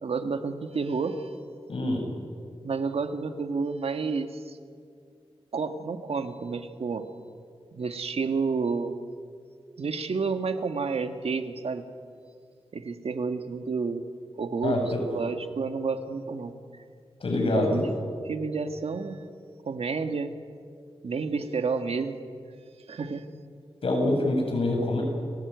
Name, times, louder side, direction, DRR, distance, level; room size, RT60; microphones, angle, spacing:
voice 1, 0.0-1.3 2.6-4.6 5.5-7.1 7.7-8.9 9.8-11.9 12.7-14.1 14.3-14.8 15.1-16.8 17.5-17.8 18.3-19.2 19.7-20.3 21.0-22.2 22.9-23.3, right 4 dB, 80° right, 7 dB, 1.8 m, -30 dB
voice 2, 1.7-2.0 14.6-15.0 17.2-17.8 23.8-25.0, left 1 dB, 65° left, 2 dB, 7.3 m, -25 dB
29.5 x 19.5 x 9.5 m, 2.3 s
wide cardioid pair, 130°, 10 cm